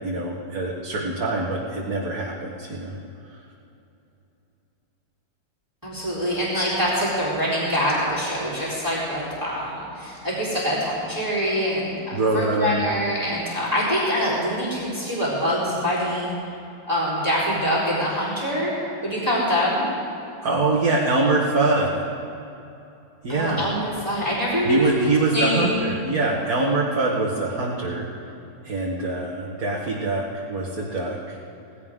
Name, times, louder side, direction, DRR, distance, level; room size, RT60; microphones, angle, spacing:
voice 1, 0.0-2.9 12.1-12.8 20.4-22.0 23.2-23.7 24.6-28.1 28.6-31.4, right 2 dB, 55° right, -4 dB, 2.0 m, -24 dB
voice 2, 5.8-16.3 16.9-18.7 19.0-19.9 23.3-25.7, equal, 10° right, -8 dB, 3.9 m, -24 dB
19.0 x 16.5 x 3.7 m, 2.9 s
omnidirectional pair, 1.9 m